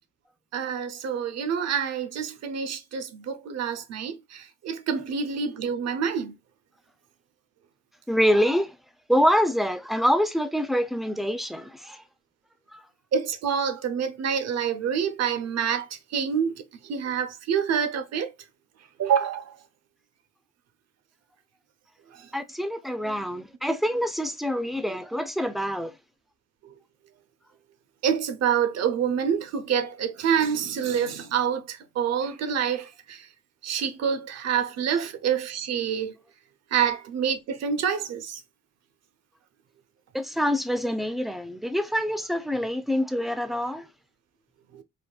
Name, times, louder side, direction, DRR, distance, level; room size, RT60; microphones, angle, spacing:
voice 1, 0.5-6.3 13.1-15.9 16.1-18.3 19.0-19.6 22.1-22.3 28.0-33.3 33.6-36.1 36.7-38.4, right 7 dB, 60° right, 0.6 m, -27 dB
voice 2, 8.1-8.7 9.1-12.0 12.7-12.8 22.3-25.9 40.1-43.9, equal, ahead, 0.3 m, -25 dB
3.4 x 2.2 x 2.2 m
cardioid pair, 90°, 30 cm